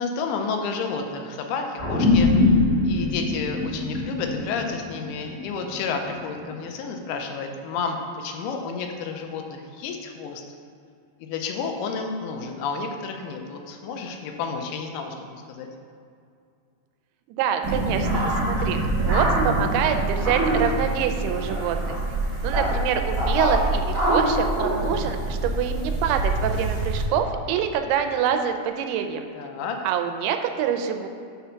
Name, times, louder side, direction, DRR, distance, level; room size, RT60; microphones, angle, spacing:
voice 1, 0.0-2.6 2.8-10.4 11.2-15.7 29.3-29.8, left 5 dB, 85° left, 4 dB, 2.6 m, -31 dB
sound 1, 1.8-6.5, left 3 dB, 55° left, 0.6 m, -23 dB
voice 2, 17.4-22.0 22.4-29.3 29.8-31.1, right 8 dB, 85° right, 6 dB, 2.6 m, -26 dB
sound 2, 17.6-27.0, right 2 dB, 70° right, 0.7 m, -24 dB
5.6 x 5.0 x 5.7 m, 2.4 s
omnidirectional pair, 4.5 m